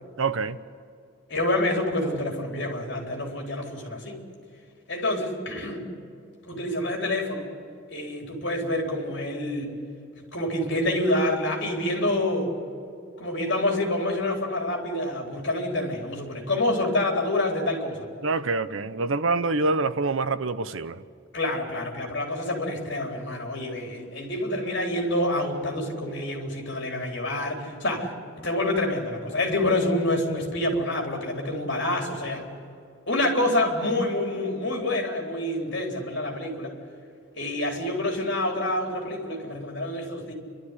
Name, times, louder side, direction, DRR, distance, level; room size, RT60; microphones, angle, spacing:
voice 1, 0.2-0.6 18.2-21.0, right 3 dB, 70° right, 0.8 m, -26 dB
voice 2, 1.3-4.2 4.9-5.9 6.5-7.5 7.9-9.7 10.3-12.5 13.2-18.1 21.3-28.1 28.4-32.5 33.1-36.8 37.4-40.3, left 1 dB, 55° left, 4.1 m, -27 dB
29.5 x 12.5 x 10.0 m
head